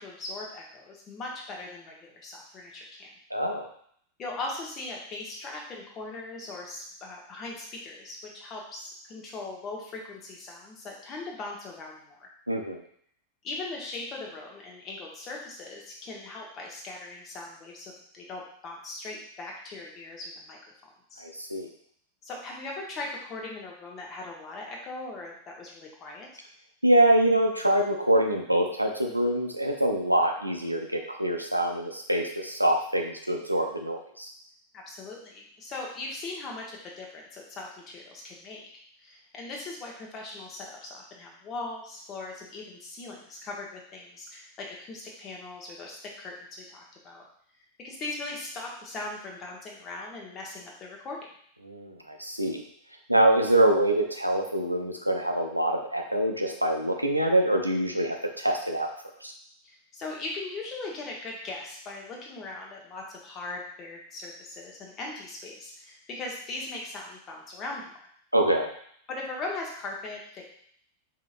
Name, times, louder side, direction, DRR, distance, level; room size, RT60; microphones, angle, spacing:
voice 1, 0.0-3.1 4.2-12.3 13.4-21.2 22.2-26.3 34.7-38.7 39.0-47.2 47.8-51.2 59.6-67.9 69.1-70.5, left 2 dB, 30° left, -1 dB, 1.1 m, -39 dB
voice 2, 3.3-3.7 12.5-12.8 21.2-21.7 26.8-34.3 51.6-52.6 53.1-58.9 59.2-59.3 68.3-68.7, right 1 dB, 90° right, 2 dB, 0.5 m, -25 dB
5.1 x 2.9 x 2.5 m, 0.64 s
figure-of-eight pair, 90°, 0 cm